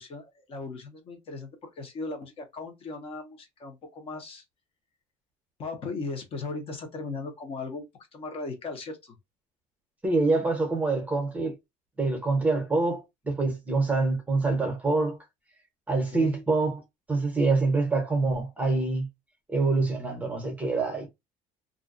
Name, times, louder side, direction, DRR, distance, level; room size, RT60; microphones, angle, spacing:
voice 1, 0.0-4.4 5.6-7.9 8.1-9.2 15.9-16.4, left 3 dB, 45° left, 0.8 m, -37 dB
voice 2, 10.0-11.5 12.0-15.2 15.9-16.8 17.1-19.1 19.5-21.1, right 3 dB, 10° right, 0.8 m, -25 dB
2.5 x 2.2 x 2.4 m
cardioid pair, 160°, 14 cm